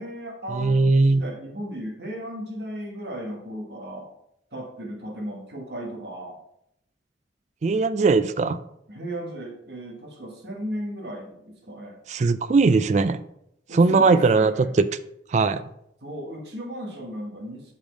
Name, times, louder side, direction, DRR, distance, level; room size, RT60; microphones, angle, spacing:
voice 1, 0.0-4.1 4.5-6.4 8.9-12.0 13.7-14.7 16.0-17.7, right 1 dB, 60° right, 0 dB, 1.3 m, -35 dB
voice 2, 0.5-1.2 7.6-8.6 12.1-13.2 13.7-14.9 15.3-15.6, right 3 dB, 40° right, 13 dB, 0.3 m, -19 dB
5.6 x 5.1 x 5.0 m, 0.77 s
head